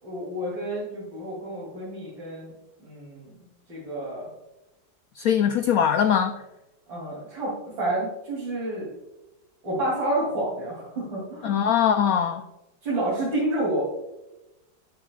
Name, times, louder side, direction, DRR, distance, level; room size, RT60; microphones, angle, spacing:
voice 1, 0.0-2.5 2.8-3.3 3.7-4.3 6.9-8.9 9.6-11.6 12.8-13.8, right 1 dB, 75° right, -7 dB, 3.7 m, -29 dB
voice 2, 5.2-6.4 11.4-12.4, left 8 dB, 85° left, 8 dB, 0.7 m, -21 dB
12.0 x 8.5 x 2.3 m, 0.97 s
omnidirectional pair, 2.1 m